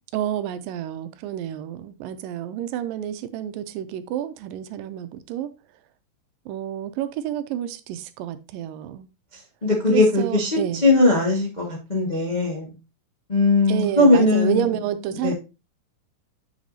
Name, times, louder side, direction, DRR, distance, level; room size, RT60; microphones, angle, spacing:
voice 1, 0.1-5.5 6.5-9.1 9.9-10.8 13.7-15.3, right 10 dB, 80° right, 2.3 m, -29 dB
voice 2, 9.6-12.7 13.3-14.6 15.2-15.3, left 2 dB, 35° left, 0.7 m, -19 dB
7.4 x 6.1 x 2.7 m
omnidirectional pair, 4.0 m